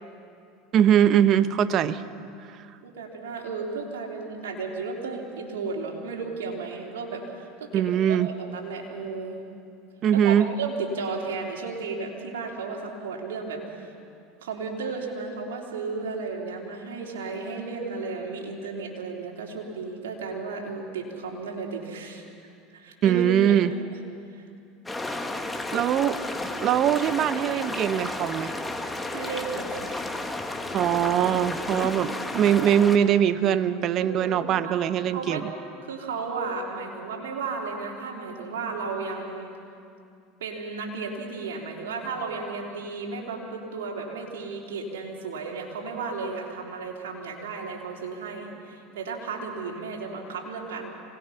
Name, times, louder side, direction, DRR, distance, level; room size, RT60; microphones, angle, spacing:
voice 1, 0.7-2.0 7.7-8.3 10.0-10.5 23.0-23.7 25.7-26.2 26.6-28.5 30.7-35.5, right 10 dB, 45° right, 13 dB, 0.9 m, -22 dB
voice 2, 2.8-9.4 10.1-13.9 14.4-22.2 22.7-23.7 24.3-24.4 29.0-30.1 34.0-34.8 35.1-35.5 35.8-39.5 40.4-50.9, right 4 dB, 85° right, -1 dB, 3.4 m, -34 dB
sound 1, 24.9-33.0, left 2 dB, 10° left, 1.8 m, -32 dB
25.5 x 19.5 x 5.8 m, 2.5 s
hypercardioid pair, 100°, 0 cm